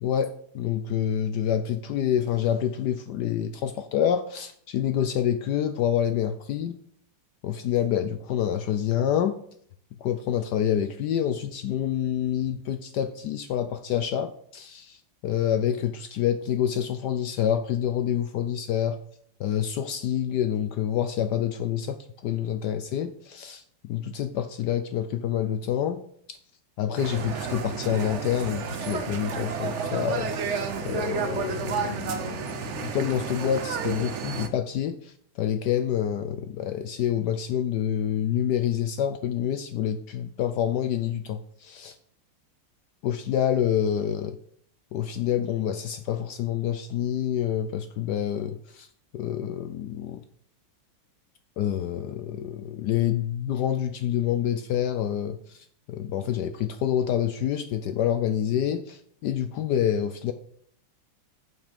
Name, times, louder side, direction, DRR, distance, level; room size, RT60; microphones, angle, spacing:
voice 1, 0.0-6.8 7.4-9.4 10.0-15.0 15.2-19.0 19.4-26.4 26.8-41.9 43.0-44.4 44.9-48.9 49.1-50.2 51.6-55.6 55.9-60.3, left 10 dB, 80° left, 10 dB, 0.9 m, -27 dB
sound 1, 27.0-34.5, right 6 dB, 80° right, 0.6 m, -31 dB
7.9 x 5.6 x 5.2 m, 0.63 s
omnidirectional pair, 2.3 m